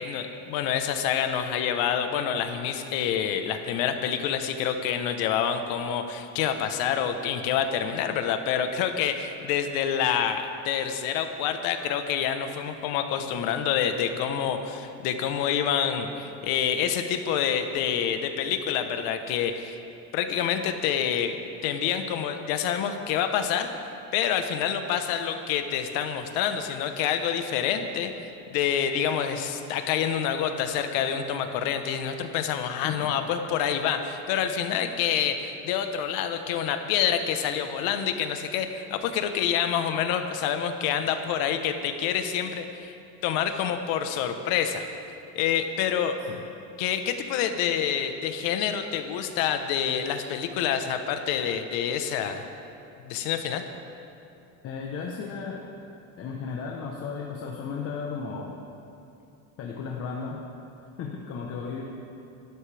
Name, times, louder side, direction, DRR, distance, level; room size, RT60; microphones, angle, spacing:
voice 1, 0.0-19.8 20.1-21.4 21.6-23.7 24.1-42.9 43.2-44.8 45.3-46.1 46.8-52.4 53.0-53.6, left 8 dB, 80° left, 7 dB, 1.2 m, -27 dB
voice 2, 32.8-33.2 46.3-46.4 54.6-55.6 56.2-58.5 59.6-60.4 61.0-61.8, left 5 dB, 40° left, -1 dB, 1.2 m, -34 dB
22.5 x 12.5 x 3.5 m, 2.7 s
cardioid pair, 160°, 34 cm